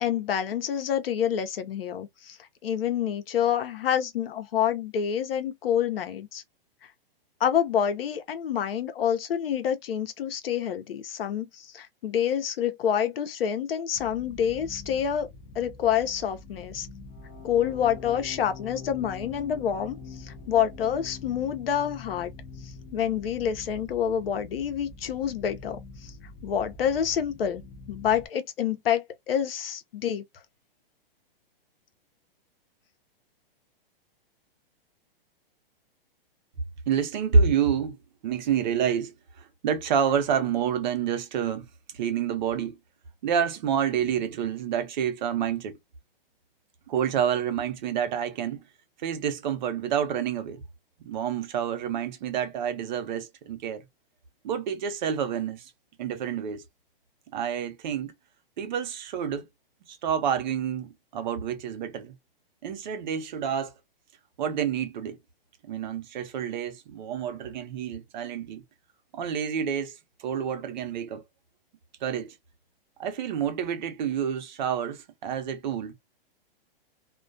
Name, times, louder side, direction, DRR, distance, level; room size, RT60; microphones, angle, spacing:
voice 1, 0.0-2.4 2.6-6.4 7.4-15.3 15.5-16.9 17.4-22.3 22.6-26.1 26.4-27.6 27.9-30.2, left 9 dB, 75° left, 0.7 m, -27 dB
sound 1, 13.9-28.3, left 4 dB, 20° left, 0.4 m, -44 dB
voice 2, 36.9-38.0 38.2-41.7 41.9-42.8 43.2-45.8 46.9-48.6 49.0-50.6 51.0-53.8 54.4-55.7 56.0-56.6 57.3-58.1 58.6-59.5 59.9-62.1 62.6-63.7 64.4-65.2 65.7-68.6 69.1-71.2 72.0-72.3 73.0-75.9, right 7 dB, 50° right, 0.6 m, -28 dB
2.2 x 2.2 x 2.5 m
hypercardioid pair, 150°, 29 cm